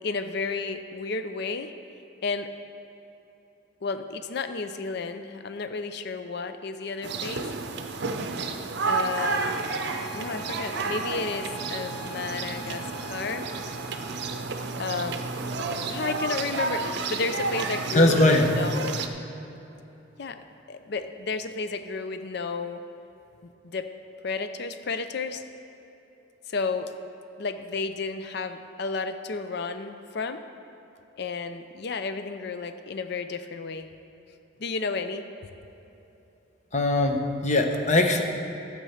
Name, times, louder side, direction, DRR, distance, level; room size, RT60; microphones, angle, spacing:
voice 1, 0.0-1.7 2.2-2.5 3.8-7.5 8.9-9.5 10.1-13.5 14.8-15.2 15.9-19.0 20.2-22.8 23.6-23.9 24.2-25.4 26.5-26.9 27.4-30.4 31.2-33.9 34.6-35.3, left 4 dB, 55° left, 9 dB, 0.5 m, -32 dB
sound 1, 7.0-19.1, right 4 dB, 55° right, 0.6 m, -31 dB
Bowed string instrument, 8.8-14.5, right 1 dB, 85° left, 1.9 m, -44 dB
voice 2, 17.9-18.5 36.7-38.2, left 2 dB, 35° left, 4 dB, 0.9 m, -21 dB
11.5 x 7.6 x 5.7 m, 3.0 s
head